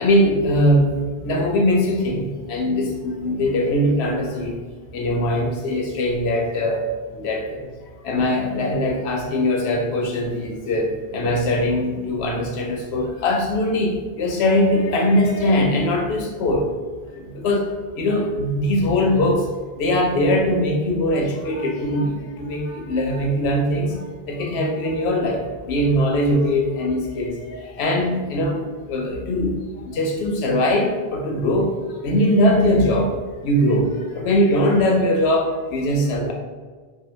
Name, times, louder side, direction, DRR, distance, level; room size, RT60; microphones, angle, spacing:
voice 1, 0.0-4.6 4.9-7.7 8.0-16.7 17.1-19.5 19.7-28.6 28.9-33.1 33.4-36.3, left 1 dB, 85° left, 1 dB, 0.9 m, -21 dB
2.7 x 2.3 x 3.0 m, 1.4 s
omnidirectional pair, 1.1 m